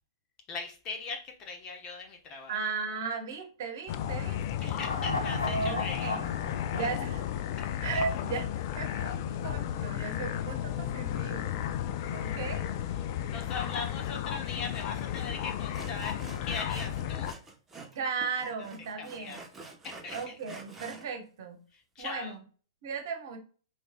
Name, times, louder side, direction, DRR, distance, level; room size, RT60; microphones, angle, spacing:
voice 1, 0.5-2.6 4.6-6.2 6.8-6.9 7.6-7.7 7.9-8.1 12.0-12.4 12.9-17.3 18.4-18.5 19.0-19.4 19.8-20.3 21.7-22.4, left 4 dB, 30° left, 2 dB, 1.0 m, -40 dB
voice 2, 2.5-4.8 5.4-6.3 6.7-7.1 7.8-8.5 8.8-11.6 12.1-12.7 17.9-19.4 20.1-21.6 22.0-22.3 22.8-23.4, right 5 dB, 55° right, 5 dB, 1.2 m, -36 dB
sound 1, 3.9-17.3, left 10 dB, 45° left, 0.4 m, -33 dB
sound 2, 4.8-8.2 8.5-8.6, left 3 dB, 80° left, 0.8 m, -36 dB
Sawing, 14.7-14.8 15.1-15.3 15.7-18.0 18.2-21.1, right 3 dB, 10° right, 1.0 m, -47 dB
4.8 x 3.1 x 2.3 m, 0.41 s
hypercardioid pair, 115°, 2 cm